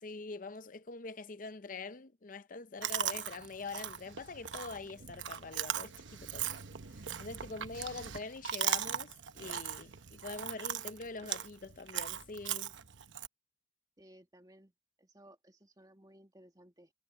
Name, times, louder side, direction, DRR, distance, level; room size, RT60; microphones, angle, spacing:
voice 1, 0.0-6.6 6.9-12.7, left 3 dB, 45° left, 0.7 m, -44 dB
Chewing mastication, 2.8-13.3, right 9 dB, 85° right, 1.0 m, -39 dB
voice 2, 14.0-14.7 15.0-16.9, right 1 dB, 20° right, 2.4 m, -59 dB
head